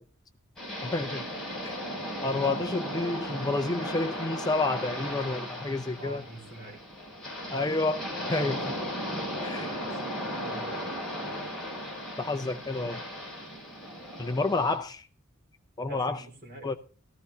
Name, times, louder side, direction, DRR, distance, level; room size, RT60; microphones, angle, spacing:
sound 1, 0.6-14.8, equal, ahead, 6.1 m, -36 dB
voice 1, 0.8-1.2 1.6-1.7 2.2-6.2 7.5-8.0 8.3-8.6 9.4-9.7 12.2-13.0 14.2-15.1 15.8-16.2 16.6-16.7, left 3 dB, 20° left, 0.6 m, -29 dB
voice 2, 2.3-2.7 5.9-6.8 9.6-11.5 15.8-16.8, right 2 dB, 45° right, 4.7 m, -46 dB
15.5 x 14.5 x 2.8 m
head